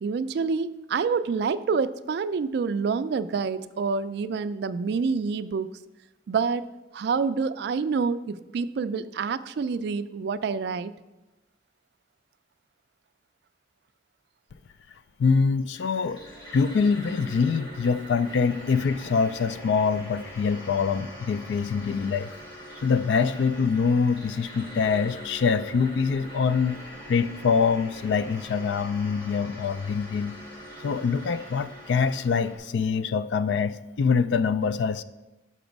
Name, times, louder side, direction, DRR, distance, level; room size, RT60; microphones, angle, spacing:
voice 1, 0.0-5.7 6.3-6.6 6.9-10.9, right 5 dB, 60° right, 13 dB, 0.3 m, -27 dB
voice 2, 15.2-16.2 16.5-22.3 22.8-26.8 27.1-30.4 30.8-35.0, left 5 dB, 70° left, 13 dB, 0.3 m, -24 dB
sound 1, 15.6-32.6, equal, 20° left, 1.9 m, -43 dB
6.2 x 5.9 x 5.2 m, 1.0 s
head